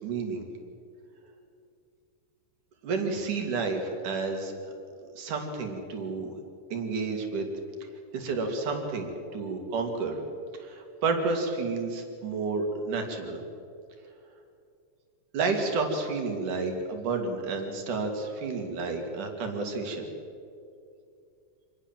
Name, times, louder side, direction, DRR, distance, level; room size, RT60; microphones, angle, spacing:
voice 1, 0.0-0.4 2.8-4.5 5.2-6.4 6.7-7.5 8.1-10.2 10.6-13.4 15.3-20.1, right 4 dB, 75° right, 4 dB, 4.2 m, -30 dB
26.5 x 20.0 x 7.5 m, 2.5 s
omnidirectional pair, 3.6 m